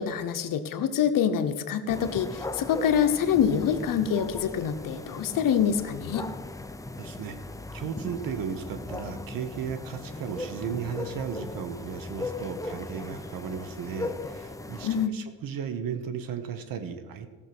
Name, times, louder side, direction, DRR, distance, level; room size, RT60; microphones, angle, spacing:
voice 1, 0.0-6.3 14.8-15.1, left 8 dB, 75° left, 9 dB, 1.0 m, -26 dB
sound 1, 1.9-15.1, left 2 dB, 10° left, 0.6 m, -38 dB
voice 2, 7.0-7.4 7.7-17.3, right 7 dB, 85° right, 10 dB, 1.2 m, -35 dB
15.0 x 6.4 x 6.1 m, 1.3 s
cardioid pair, 105°, 33 cm